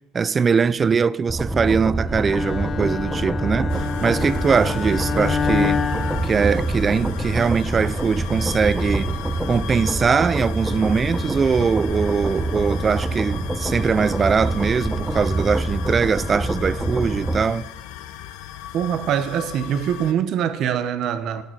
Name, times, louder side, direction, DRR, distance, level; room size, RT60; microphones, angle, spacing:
voice 1, 0.1-5.8 6.2-9.1 9.5-17.7, right 5 dB, 30° right, 0.4 m, -21 dB
sound 1, 1.3-17.4, right 2 dB, 10° right, 1.1 m, -26 dB
Bowed string instrument, 2.1-7.1, left 7 dB, 35° left, 0.7 m, -27 dB
sound 2, 3.7-20.1, left 11 dB, 85° left, 1.0 m, -37 dB
voice 2, 18.7-21.4, right 9 dB, 60° right, 1.1 m, -23 dB
13.5 x 9.1 x 6.4 m
supercardioid pair, 100°, 0 cm